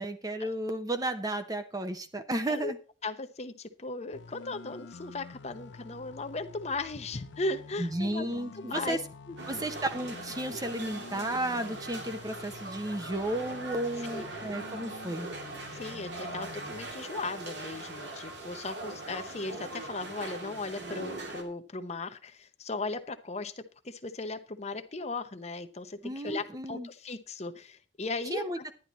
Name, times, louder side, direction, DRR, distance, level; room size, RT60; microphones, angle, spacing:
voice 1, 0.0-2.8 7.8-9.0 9.5-15.3 26.0-26.9 28.3-28.6, right 1 dB, 20° right, 8 dB, 0.9 m, -33 dB
voice 2, 3.0-9.0 9.5-9.6 14.1-14.3 15.7-28.7, left 3 dB, 35° left, 9 dB, 0.8 m, -37 dB
sound 1, 4.1-16.9, left 4 dB, 75° left, 0.6 m, -48 dB
sound 2, 9.4-21.4, right 2 dB, 65° right, 2.5 m, -41 dB
11.0 x 10.5 x 4.1 m, 0.35 s
head